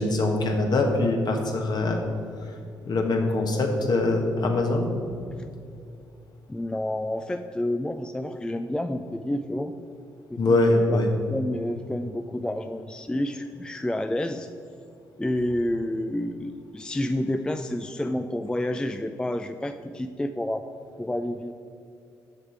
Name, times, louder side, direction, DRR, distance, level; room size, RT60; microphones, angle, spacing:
voice 1, 0.0-2.0 2.8-4.9 10.4-11.1, left 2 dB, 50° left, 3 dB, 1.3 m, -23 dB
voice 2, 6.5-9.7 10.3-11.0 11.3-14.5 15.2-20.6 21.0-21.5, left 1 dB, 10° left, 8 dB, 0.4 m, -29 dB
6.8 x 6.5 x 4.5 m, 2.6 s
hypercardioid pair, 50°, 9 cm